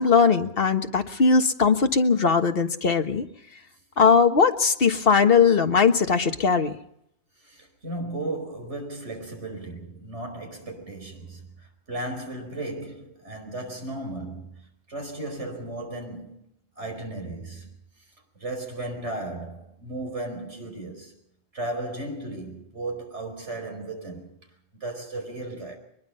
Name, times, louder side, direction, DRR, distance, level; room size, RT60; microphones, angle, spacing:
voice 1, 0.0-3.2 4.0-6.7, left 5 dB, 55° left, 1.6 m, -20 dB
voice 2, 7.4-14.5 14.9-16.4 16.8-17.7 18.4-21.1 21.5-24.4 24.7-25.8, right 2 dB, 70° right, 5.2 m, -35 dB
23.0 x 21.5 x 5.6 m
omnidirectional pair, 1.2 m